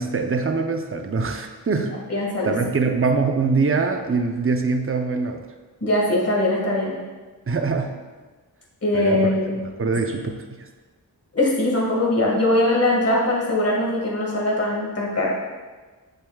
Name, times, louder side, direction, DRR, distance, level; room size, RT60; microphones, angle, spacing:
voice 1, 0.0-2.0 2.4-5.5 7.5-8.0 8.9-9.3 9.8-10.7, right 4 dB, 35° right, 5 dB, 0.7 m, -23 dB
voice 2, 2.1-2.6 5.8-7.0 8.8-9.6 11.3-15.4, left 1 dB, 35° left, -4 dB, 1.8 m, -21 dB
7.9 x 7.1 x 2.3 m, 1.3 s
wide cardioid pair, 60°, 39 cm